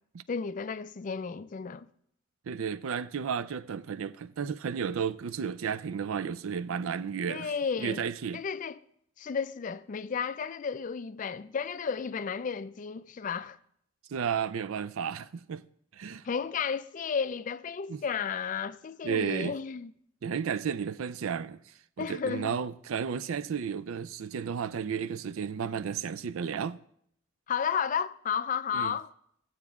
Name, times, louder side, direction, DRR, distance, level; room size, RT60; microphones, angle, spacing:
voice 1, 0.3-1.9 7.3-8.0 8.3-8.8 9.2-13.6 16.2-19.9 22.0-22.6 27.5-29.1, left 6 dB, 40° left, 0.3 m, -33 dB
voice 2, 2.5-7.5 7.8-8.4 14.1-15.6 15.9-16.3 17.9-18.0 19.0-19.5 20.2-21.6 22.0-26.8 28.7-28.9, right 7 dB, 75° right, 0.4 m, -33 dB
15.0 x 7.9 x 3.6 m
head